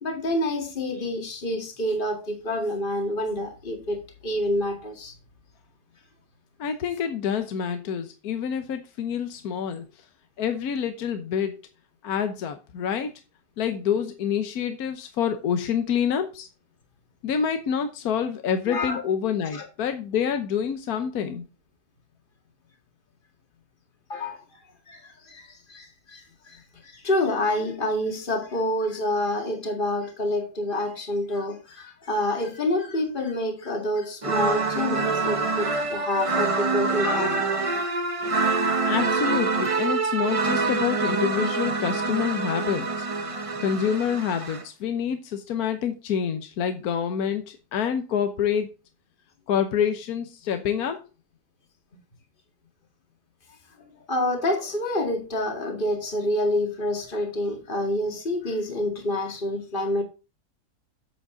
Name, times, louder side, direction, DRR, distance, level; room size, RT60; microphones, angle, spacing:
voice 1, 0.0-5.1 18.7-19.0 19.5-19.6 24.1-24.4 24.9-37.5 54.1-60.0, left 1 dB, 30° left, 2.2 m, -28 dB
voice 2, 6.6-9.8 10.4-11.6 12.0-13.1 13.6-16.5 17.2-21.4 38.9-43.1 43.6-48.7 49.5-51.0, left 8 dB, 70° left, 1.4 m, -27 dB
sound 1, 34.2-44.6, right 4 dB, 30° right, 0.7 m, -26 dB
8.3 x 7.8 x 3.8 m
omnidirectional pair, 1.7 m